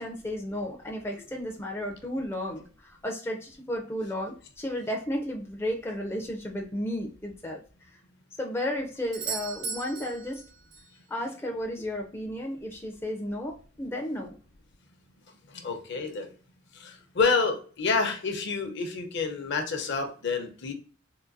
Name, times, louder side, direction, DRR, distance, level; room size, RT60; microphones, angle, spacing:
voice 1, 0.0-7.6 8.4-10.4 11.1-14.4, left 1 dB, 10° left, 1 dB, 0.4 m, -33 dB
Doorbell, 9.1-11.0 15.0-15.1, right 5 dB, 80° right, 0.7 m, -37 dB
voice 2, 15.5-16.3 16.7-20.7, left 4 dB, 60° left, 5 dB, 0.7 m, -28 dB
3.8 x 2.6 x 2.5 m, 0.40 s
head